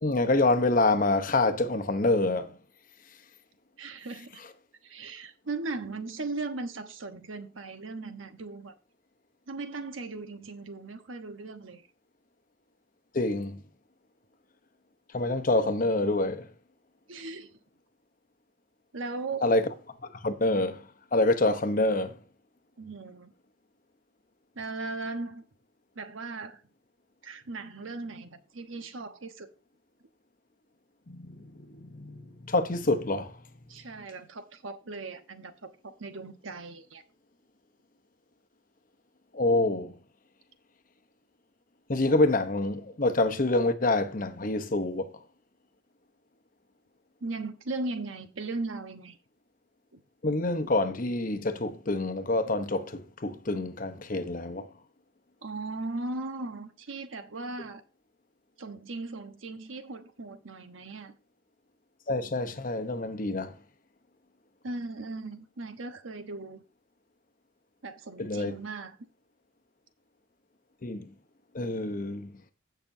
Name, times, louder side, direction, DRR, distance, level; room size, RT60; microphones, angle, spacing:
voice 1, 0.0-2.5 13.1-13.6 15.1-16.4 19.4-19.6 20.2-20.8 21.1-22.2 31.1-31.4 31.8-33.3 39.3-39.9 41.9-45.1 50.2-54.7 62.1-63.5 68.2-68.5 70.8-71.0 71.5-72.3, left 2 dB, 45° left, 0.9 m, -26 dB
voice 2, 3.8-4.4 4.8-8.7 9.5-11.8 17.1-17.6 18.9-19.5 22.8-23.3 24.5-25.4 25.9-26.6 27.2-29.5 33.7-37.0 47.2-49.2 49.9-50.0 55.4-57.8 58.6-61.1 64.6-66.6 67.8-69.1, right 3 dB, 90° right, 1.1 m, -38 dB
16.0 x 5.9 x 2.7 m
head